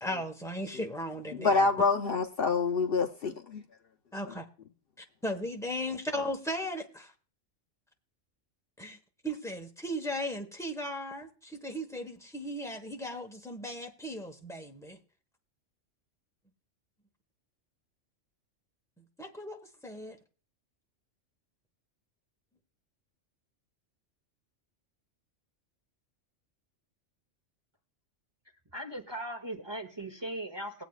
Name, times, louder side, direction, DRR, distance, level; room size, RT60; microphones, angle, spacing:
voice 1, 0.0-1.7 4.1-4.5 5.0-7.1 8.8-9.0 9.2-15.0 19.0-20.2, equal, 5° left, 1.0 m, -37 dB
voice 2, 1.3-3.6, left 4 dB, 55° left, 0.8 m, -27 dB
voice 3, 28.7-30.8, right 1 dB, 25° right, 0.9 m, -38 dB
20.0 x 8.2 x 2.4 m
omnidirectional pair, 1.3 m